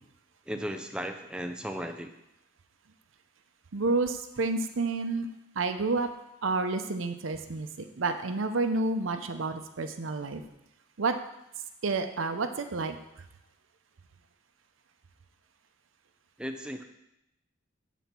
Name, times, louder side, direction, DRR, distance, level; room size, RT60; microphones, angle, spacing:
voice 1, 0.5-2.1 16.4-16.8, equal, 5° right, 6 dB, 0.5 m, -36 dB
voice 2, 3.7-5.3 5.5-6.1 6.4-7.7 8.0-10.4 11.0-11.1 11.8-13.0, right 3 dB, 80° right, 8 dB, 0.7 m, -29 dB
8.6 x 4.1 x 5.9 m, 0.87 s
head